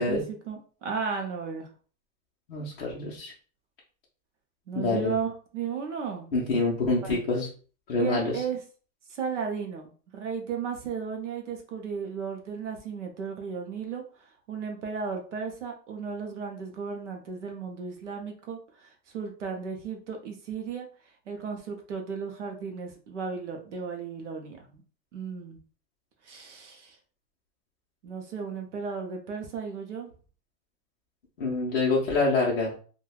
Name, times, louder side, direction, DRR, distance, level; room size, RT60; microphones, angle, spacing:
voice 1, 0.0-1.7 4.7-6.3 7.0-7.2 8.0-8.6 9.1-20.9 21.3-24.7 25.1-25.6 26.2-27.0 28.0-30.1, right 6 dB, 50° right, 2 dB, 0.5 m, -35 dB
voice 2, 2.5-3.3 4.7-5.1 6.3-7.5 7.9-8.4 31.4-32.7, left 3 dB, 40° left, -5 dB, 0.6 m, -26 dB
3.1 x 2.2 x 2.2 m, 0.40 s
supercardioid pair, 175°, 49 cm